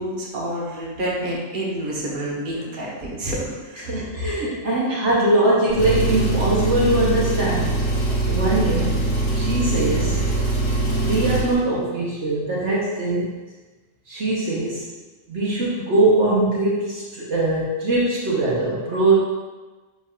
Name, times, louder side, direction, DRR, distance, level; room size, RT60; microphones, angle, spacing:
voice 1, 0.0-4.0, right 1 dB, 40° right, -5 dB, 1.3 m, -28 dB
voice 2, 3.8-7.8 8.3-9.0 9.3-10.5 11.0-13.4 14.1-14.9 15.3-19.2, right 2 dB, 65° right, -6 dB, 1.4 m, -21 dB
Engine, 5.7-11.5, right 2 dB, 55° left, 1.6 m, -22 dB
9.7 x 4.0 x 2.5 m, 1.2 s
omnidirectional pair, 1.3 m